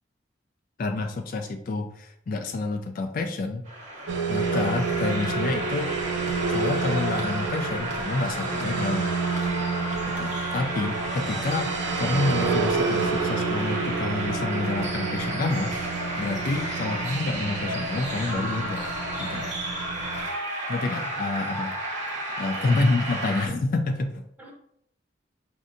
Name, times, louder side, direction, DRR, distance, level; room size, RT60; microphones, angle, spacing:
voice 1, 0.8-3.6 4.3-5.9 6.5-9.1 10.1-15.8 16.2-19.5 20.7-21.7 22.4-24.2, left 3 dB, 50° left, 6 dB, 0.3 m, -28 dB
sound 1, 3.6-23.5, right 1 dB, 40° right, 0.9 m, -32 dB
sound 2, 4.1-20.2, right 4 dB, 75° right, 0.4 m, -30 dB
voice 2, 22.6-22.9 24.4-24.5, equal, 10° right, -1 dB, 0.7 m, -46 dB
5.2 x 2.6 x 2.5 m, 0.70 s
head